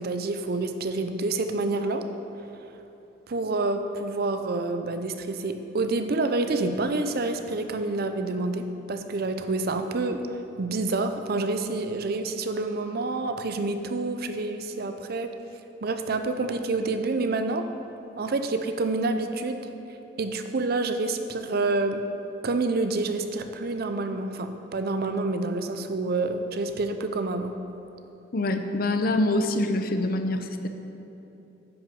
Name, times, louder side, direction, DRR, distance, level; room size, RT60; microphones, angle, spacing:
voice 1, 0.0-2.1 3.3-15.3 15.8-17.7 18.2-19.6 20.2-22.0 22.4-27.6, right 3 dB, 55° right, 8 dB, 0.5 m, -28 dB
voice 2, 28.3-30.7, left 2 dB, 55° left, 7 dB, 0.6 m, -25 dB
10.0 x 6.2 x 5.2 m, 2.9 s
head